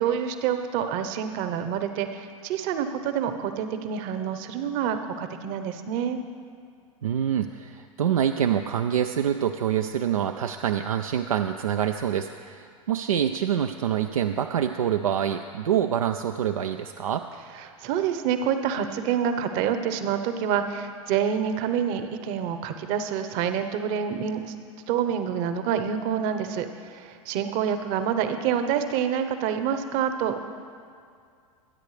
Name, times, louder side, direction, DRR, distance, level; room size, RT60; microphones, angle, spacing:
voice 1, 0.0-6.2 17.6-24.5 24.9-30.4, right 8 dB, 50° right, 8 dB, 1.0 m, -27 dB
voice 2, 7.0-17.3, right 9 dB, 85° right, 6 dB, 0.5 m, -26 dB
22.0 x 9.2 x 3.3 m, 2.3 s
hypercardioid pair, 95°, 17 cm